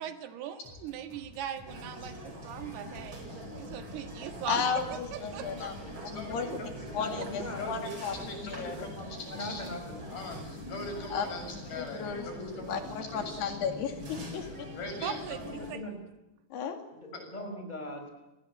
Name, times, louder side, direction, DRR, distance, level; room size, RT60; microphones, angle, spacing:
voice 1, 0.0-3.2 3.5-4.7 5.1-5.7 6.5-6.6 7.2-7.3 15.0-15.8, right 9 dB, 85° right, 8 dB, 3.7 m, -40 dB
sound 1, 0.6-11.8 12.2-13.6, left 2 dB, 40° left, 8.6 m, -54 dB
sound 2, 1.7-15.7, equal, 30° right, 4.8 m, -43 dB
voice 2, 4.5-5.8 6.1-8.9 11.1-11.3 11.8-14.7 16.5-16.8, left 6 dB, 90° left, 5 dB, 4.6 m, -35 dB
voice 3, 6.1-6.9 7.6-9.6 10.1-13.3 14.5-15.6 17.1-17.2, left 2 dB, 65° left, 2 dB, 8.8 m, -41 dB
voice 4, 6.8-7.9 9.2-10.0 15.6-16.0 16.9-18.1, left 1 dB, 10° left, 5 dB, 5.2 m, -40 dB
30.0 x 20.0 x 8.7 m, 0.97 s
omnidirectional pair, 4.6 m